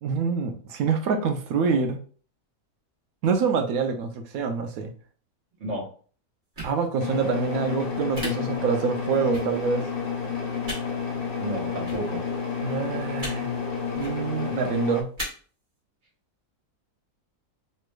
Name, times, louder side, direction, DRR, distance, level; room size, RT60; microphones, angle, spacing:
voice 1, 0.0-2.0 3.2-4.9 6.6-9.9 12.6-13.6 14.0-15.1, right 5 dB, 70° right, 5 dB, 1.0 m, -26 dB
sound 1, 6.5-6.7 8.1-8.3 9.3-9.4 10.6-10.8 11.8-12.0 13.2-13.3 13.9-14.1 15.2-15.3, equal, 35° right, 1.2 m, -34 dB
sound 2, 7.0-15.0, left 6 dB, 75° left, 0.5 m, -30 dB
voice 2, 11.4-12.2, right 1 dB, 50° right, -2 dB, 1.6 m, -31 dB
3.3 x 3.1 x 2.3 m, 0.41 s
omnidirectional pair, 1.7 m